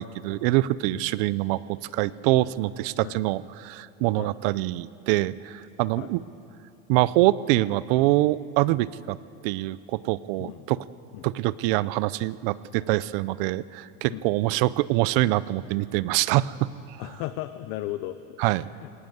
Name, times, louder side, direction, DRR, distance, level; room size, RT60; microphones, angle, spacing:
voice 1, 0.0-6.2 6.9-9.2 9.4-10.8 11.2-17.0 18.4-18.7, right 17 dB, 60° right, 19 dB, 0.5 m, -25 dB
voice 2, 10.4-10.7 11.1-11.3 14.1-14.2 17.0-18.4 18.7-18.9, left 15 dB, 50° left, 11 dB, 0.6 m, -35 dB
18.5 x 18.5 x 8.0 m, 2.7 s
cardioid pair, 170°, 31 cm